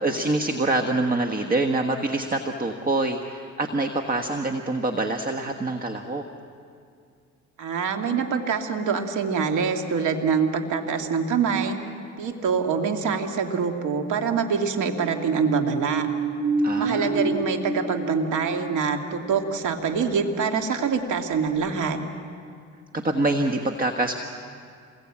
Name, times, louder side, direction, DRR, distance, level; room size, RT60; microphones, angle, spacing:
voice 1, 0.0-6.2 16.6-17.3 23.0-24.2, right 2 dB, 30° right, 5 dB, 1.5 m, -25 dB
voice 2, 7.6-11.8 12.2-16.1 16.8-22.0, right 6 dB, 80° right, 4 dB, 2.3 m, -25 dB
sound 1, 14.8-21.1 21.5-21.6, right 3 dB, 60° right, 4.9 m, -29 dB
27.5 x 21.5 x 8.8 m, 2.3 s
cardioid pair, 90°, 30 cm